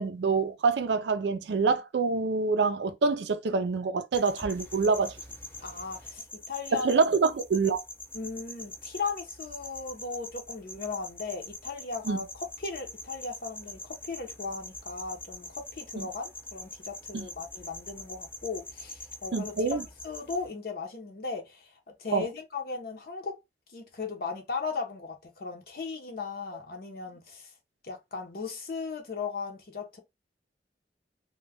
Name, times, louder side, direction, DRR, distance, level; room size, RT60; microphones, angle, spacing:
voice 1, 0.0-5.1 6.7-7.8 12.1-12.2 16.0-16.1 17.1-17.3 19.3-19.8 22.1-22.3, right 4 dB, 80° right, 0.4 m, -26 dB
sound 1, 4.1-20.5, left 2 dB, 10° left, 0.5 m, -44 dB
voice 2, 5.6-7.0 8.1-23.4 23.7-27.5 27.8-30.0, left 4 dB, 55° left, 0.6 m, -37 dB
2.2 x 2.1 x 3.3 m
head